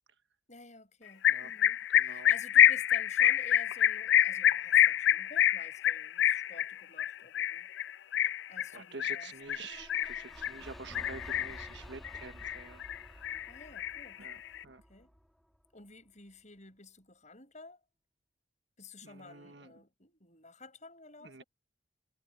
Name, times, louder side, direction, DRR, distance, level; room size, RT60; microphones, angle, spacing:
voice 1, 0.5-7.7 8.5-9.3 13.5-14.3 14.9-15.1 15.7-17.8 18.8-21.4, left 3 dB, 40° left, 7.5 m, -52 dB
sound 1, 1.2-10.6 11.0-11.7 12.0-13.0 13.2-14.6, left 11 dB, 65° left, 0.3 m, -27 dB
voice 2, 1.9-2.3 8.7-12.8 14.2-14.4 14.6-14.8 19.0-19.7 21.2-21.4, right 4 dB, 65° right, 1.4 m, -48 dB
sound 2, 9.4-15.6, equal, ahead, 2.2 m, -51 dB
head